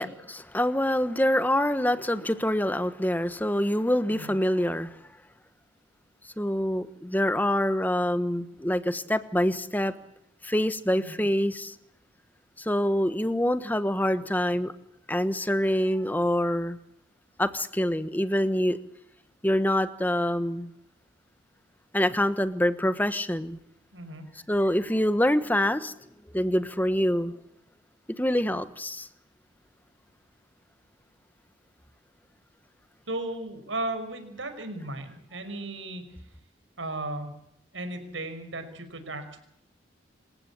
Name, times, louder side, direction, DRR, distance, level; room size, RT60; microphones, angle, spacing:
voice 1, 0.0-5.0 6.4-9.9 10.4-11.7 12.6-14.7 15.1-16.8 17.4-18.8 19.4-20.7 21.9-23.6 24.5-25.9 26.3-27.3 28.2-29.1, left 1 dB, 10° left, 12 dB, 1.2 m, -25 dB
voice 2, 23.9-24.3 33.1-36.0 36.8-37.3 37.7-39.4, right 2 dB, 85° right, 7 dB, 5.7 m, -35 dB
27.0 x 15.5 x 8.6 m, 0.75 s
head